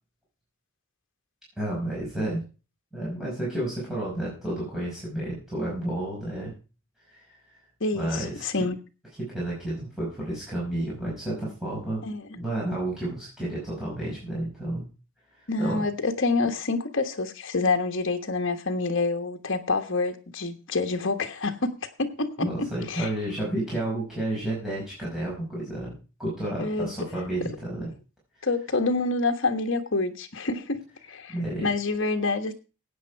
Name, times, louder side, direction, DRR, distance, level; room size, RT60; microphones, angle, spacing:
voice 1, 1.6-2.4 2.9-6.5 7.1-7.4 7.9-8.7 9.2-12.0 12.3-14.9 15.6-15.8 22.4-25.9 26.2-27.9 31.3-31.7, right 1 dB, ahead, -6 dB, 5.4 m, -31 dB
voice 2, 7.8-8.8 12.0-12.4 15.5-23.1 26.6-26.9 28.4-31.4 31.6-32.5, left 3 dB, 60° left, 5 dB, 1.4 m, -27 dB
15.5 x 8.7 x 4.6 m, 0.34 s
head